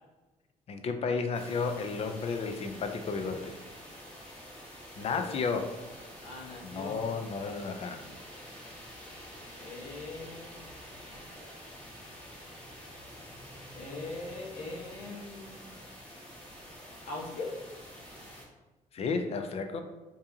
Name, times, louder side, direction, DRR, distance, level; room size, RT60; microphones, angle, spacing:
voice 1, 0.7-3.6 5.0-5.7 6.6-8.0 18.9-19.8, left 4 dB, 50° left, 7 dB, 0.4 m, -32 dB
sound 1, 1.3-18.4, equal, 5° left, 1.2 m, -48 dB
voice 2, 5.0-5.4 6.2-7.0 9.6-10.6 13.7-15.7 17.1-17.6, left 3 dB, 65° left, -3 dB, 1.1 m, -41 dB
4.8 x 2.7 x 2.7 m, 1.2 s
cardioid pair, 125°, 14 cm